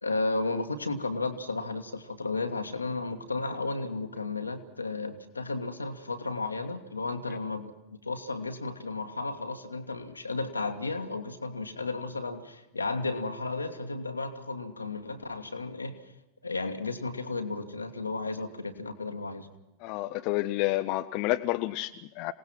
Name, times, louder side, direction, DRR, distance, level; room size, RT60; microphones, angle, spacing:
voice 1, 0.0-7.7 8.0-16.0 16.4-19.5, left 3 dB, 80° left, 6 dB, 1.7 m, -33 dB
voice 2, 19.8-22.3, left 17 dB, 45° left, 9 dB, 0.7 m, -29 dB
27.0 x 18.0 x 6.1 m, 0.96 s
figure-of-eight pair, 90°, 0 cm